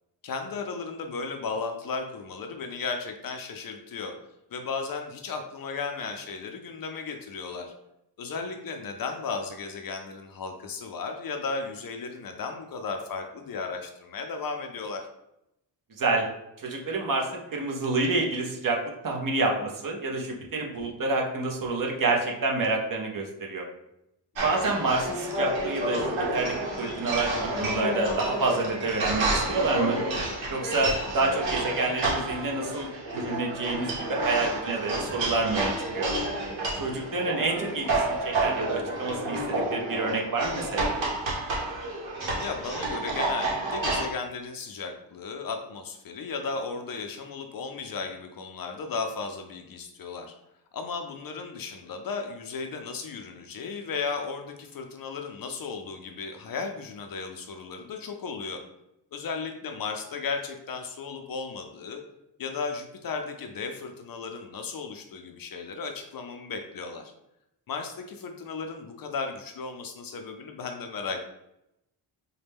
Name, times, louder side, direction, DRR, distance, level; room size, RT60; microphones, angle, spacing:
voice 1, 0.2-4.1 4.5-7.7 8.2-15.1 24.4-24.6 36.8-37.1 42.4-50.3 50.7-58.6 59.1-62.0 62.4-67.1 67.7-71.2, left 4 dB, 50° left, 5 dB, 0.5 m, -35 dB
voice 2, 16.0-16.3 16.6-23.6 24.4-30.0 30.5-36.1 36.7-40.9, right 3 dB, 45° right, 0 dB, 0.8 m, -28 dB
sound 1, 24.4-44.1, right 2 dB, 80° right, 1.0 m, -30 dB
4.1 x 2.1 x 3.4 m, 0.84 s
wide cardioid pair, 130°, 45 cm